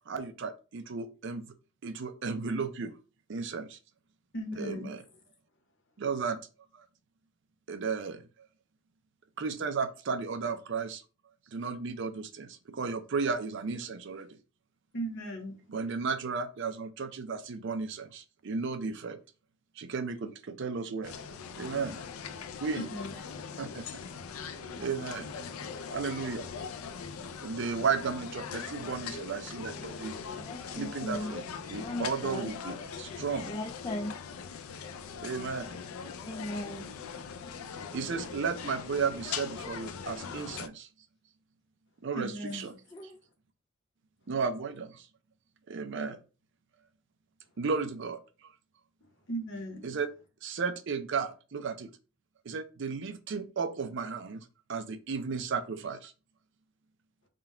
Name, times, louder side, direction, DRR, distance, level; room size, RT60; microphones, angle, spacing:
voice 1, 0.1-1.5 1.8-2.9 3.3-3.8 4.6-5.0 6.0-6.4 6.7-6.8 7.7-8.2 9.4-11.0 11.5-14.3 15.7-19.2 19.8-21.1 21.6-22.2 22.6-22.9 23.6-24.0 24.8-25.3 25.9-26.5 27.4-30.2 30.7-31.4 31.7-33.5 35.2-35.8 37.9-40.9 42.0-42.7 44.3-45.1 45.7-46.2 47.6-48.5 49.8-50.1 50.4-51.9 52.4-56.1, right 5 dB, 60° right, 0.5 m, -34 dB
voice 2, 4.3-5.0 14.9-15.5 22.8-23.1 42.1-42.7 49.3-49.8, right 1 dB, 60° left, 1.0 m, -36 dB
sound 1, 21.0-40.7, left 6 dB, 90° left, 0.4 m, -41 dB
voice 3, 30.3-31.3 31.8-32.5 33.4-34.1 36.2-36.9 37.8-38.0 39.6-39.7 42.9-43.2, left 1 dB, 20° left, 0.3 m, -38 dB
3.8 x 2.3 x 4.3 m
head